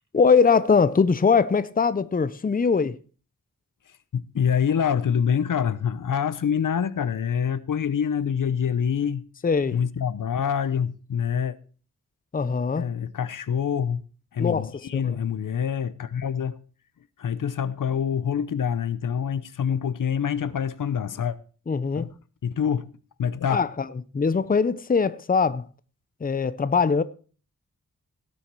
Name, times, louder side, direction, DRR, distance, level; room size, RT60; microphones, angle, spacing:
voice 1, 0.1-3.0 9.4-9.8 12.3-12.9 14.4-15.2 21.7-22.1 23.5-23.9 24.1-25.7 26.2-27.0, left 5 dB, 25° left, 0.6 m, -22 dB
voice 2, 4.2-9.2 9.7-11.6 12.8-14.0 14.3-16.6 17.2-21.4 22.0-22.1 22.4-22.9 23.2-23.6, left 7 dB, 75° left, 0.8 m, -26 dB
17.5 x 7.1 x 4.6 m
wide cardioid pair, 85°, 32 cm